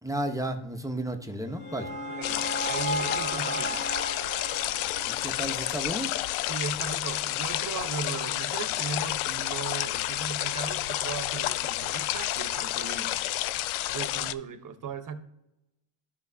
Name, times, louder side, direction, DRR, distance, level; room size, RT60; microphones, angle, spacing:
voice 1, 0.0-1.9 5.0-6.1, right 1 dB, 5° right, 5 dB, 0.9 m, -33 dB
sound 1, 1.2-6.4, equal, 25° left, 1.6 m, -35 dB
voice 2, 2.1-3.9 6.5-13.1 13.9-15.2, right 6 dB, 40° right, 10 dB, 1.0 m, -37 dB
sound 2, 2.2-14.3, left 15 dB, 75° left, 0.5 m, -30 dB
12.0 x 5.4 x 2.7 m, 0.86 s
supercardioid pair, 85°, 48 cm